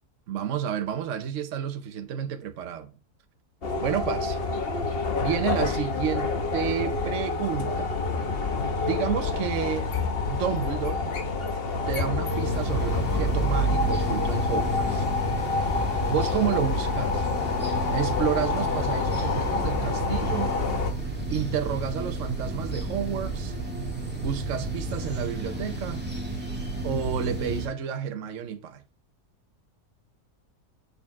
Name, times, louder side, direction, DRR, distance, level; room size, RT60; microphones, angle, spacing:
voice 1, 0.3-2.9 3.8-4.4 5.2-8.0 8.8-9.9 10.3-11.2 11.9-15.1 16.1-17.3 17.9-20.5 21.3-23.6 24.2-26.0 26.8-28.8, right 8 dB, 55° right, 1.1 m, -30 dB
sound 1, 3.6-20.9, left 4 dB, 40° left, 1.2 m, -28 dB
sound 2, 12.3-27.7, right 2 dB, 5° right, 2.0 m, -31 dB
7.0 x 6.8 x 4.6 m
omnidirectional pair, 1.7 m